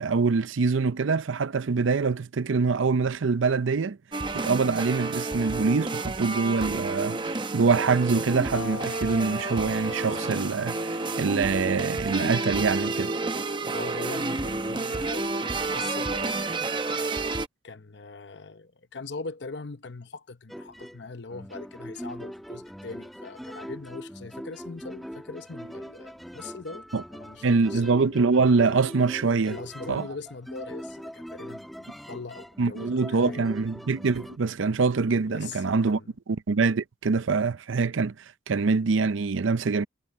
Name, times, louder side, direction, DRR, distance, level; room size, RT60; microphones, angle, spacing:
voice 1, 0.0-4.0 4.3-13.1 26.9-27.0 27.4-29.6 29.9-30.0 32.6-36.0 36.3-38.1 38.5-39.8, right 4 dB, 80° right, 0.6 m, -24 dB
sound 1, 4.1-17.5, right 3 dB, 25° right, 0.8 m, -30 dB
sound 2, 8.5-15.2, left 3 dB, 90° left, 1.4 m, -43 dB
voice 2, 13.7-16.7 17.6-27.9 29.5-33.5 35.3-36.1, left 4 dB, 60° left, 0.8 m, -41 dB
sound 3, 20.5-34.4, equal, ahead, 1.2 m, -41 dB
head